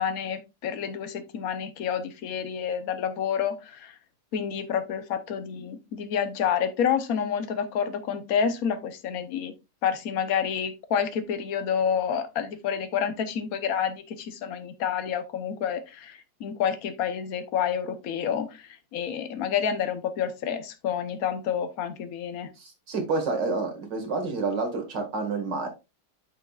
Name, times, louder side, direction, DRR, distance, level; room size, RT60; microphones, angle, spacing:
voice 1, 0.0-4.0 4.3-9.5 9.8-22.5, left 8 dB, 60° left, 1.3 m, -29 dB
voice 2, 22.6-25.7, right 3 dB, 90° right, 2.6 m, -29 dB
8.9 x 6.0 x 2.4 m
omnidirectional pair, 1.8 m